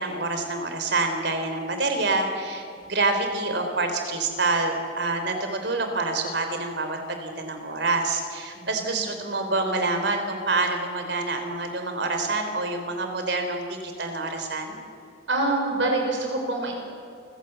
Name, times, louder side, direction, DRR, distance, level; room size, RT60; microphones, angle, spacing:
voice 1, 0.0-14.8, right 3 dB, 65° right, 6 dB, 3.4 m, -27 dB
voice 2, 8.5-9.0 15.3-16.7, right 2 dB, 90° right, 1 dB, 5.8 m, -26 dB
29.0 x 15.5 x 8.0 m, 2.4 s
head